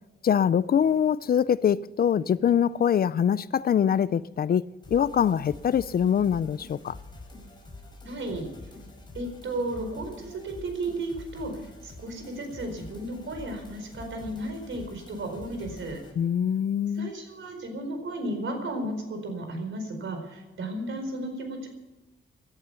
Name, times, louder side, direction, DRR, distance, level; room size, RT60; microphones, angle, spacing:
voice 1, 0.2-7.0 16.2-17.1, left 8 dB, 45° left, 0.4 m, -24 dB
sound 1, 4.8-16.1, left 2 dB, 20° left, 5.2 m, -46 dB
voice 2, 8.0-8.5 9.1-16.0 17.0-21.7, right 1 dB, 70° right, 4.6 m, -34 dB
17.0 x 12.0 x 6.9 m
wide cardioid pair, 155°, 21 cm